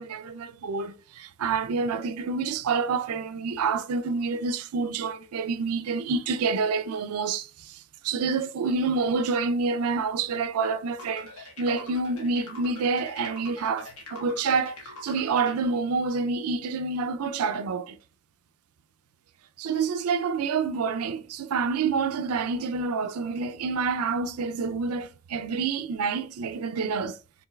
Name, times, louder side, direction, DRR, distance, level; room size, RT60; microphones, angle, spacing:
voice 1, 0.0-18.0 19.6-27.2, right 4 dB, 85° right, 0.4 m, -28 dB
sound 1, 11.0-15.6, left 3 dB, 80° left, 1.2 m, -44 dB
5.1 x 3.1 x 2.2 m
head